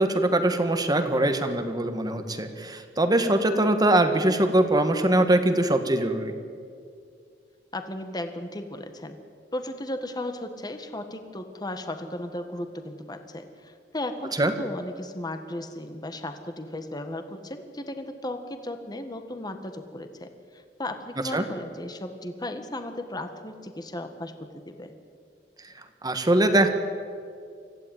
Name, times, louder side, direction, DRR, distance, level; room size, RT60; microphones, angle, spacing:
voice 1, 0.0-6.3 14.4-14.5 21.3-21.4 26.0-26.7, right 1 dB, 25° right, 7 dB, 1.6 m, -22 dB
voice 2, 7.7-9.2 9.5-24.9, left 1 dB, 25° left, 7 dB, 1.7 m, -35 dB
25.0 x 15.5 x 9.3 m, 2.3 s
head